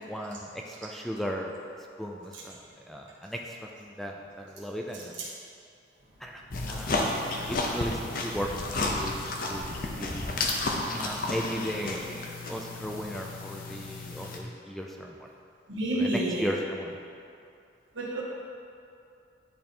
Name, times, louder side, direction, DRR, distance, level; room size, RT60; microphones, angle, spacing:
voice 1, 0.1-1.6 2.0-2.6 2.8-5.2 6.2-6.4 6.7-9.7 10.0-10.4 10.9-15.3 15.9-17.0, equal, ahead, 0 dB, 0.3 m, -36 dB
sound 1, 6.5-14.4, left 2 dB, 45° left, 0.7 m, -32 dB
voice 2, 15.7-16.5 17.9-18.2, right 1 dB, 85° right, -6 dB, 1.7 m, -28 dB
10.0 x 3.5 x 4.3 m, 2.5 s
head